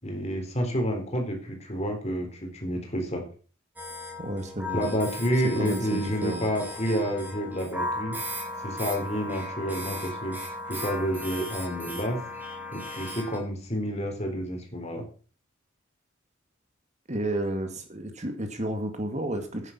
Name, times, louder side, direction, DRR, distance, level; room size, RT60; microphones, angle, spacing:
voice 1, 0.0-3.2 4.7-8.2 8.6-10.4 10.7-12.2 12.7-15.0, equal, 30° left, 3 dB, 3.9 m, -29 dB
sound 1, 3.8-13.4, left 1 dB, 10° right, 4.2 m, -36 dB
voice 2, 4.2-4.9 5.6-6.5 17.1-19.7, right 1 dB, 35° right, 6 dB, 2.1 m, -31 dB
11.0 x 10.0 x 6.0 m, 0.38 s
head